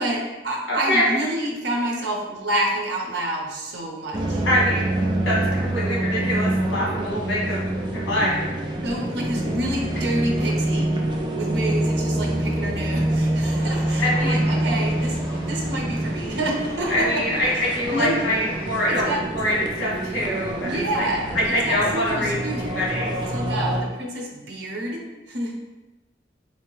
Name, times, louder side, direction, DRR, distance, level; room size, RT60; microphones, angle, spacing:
voice 1, 0.0-4.4 8.8-11.1 11.4-15.2 15.5-17.2 17.9-18.2 18.9-19.2 20.6-22.7 23.3-25.0 25.3-25.5, right 1 dB, 60° right, -1 dB, 0.8 m, -28 dB
voice 2, 0.7-1.1 4.4-5.0 5.2-7.6 8.1-8.6 14.0-14.5 16.9-21.1 21.3-22.3 22.7-23.1, left 1 dB, 90° left, -5 dB, 1.5 m, -24 dB
sound 1, 4.1-23.8, right 1 dB, 25° right, 0.3 m, -26 dB
sound 2, 13.5-18.7, left 1 dB, 35° left, 1.4 m, -42 dB
4.2 x 2.8 x 3.1 m, 1.1 s
head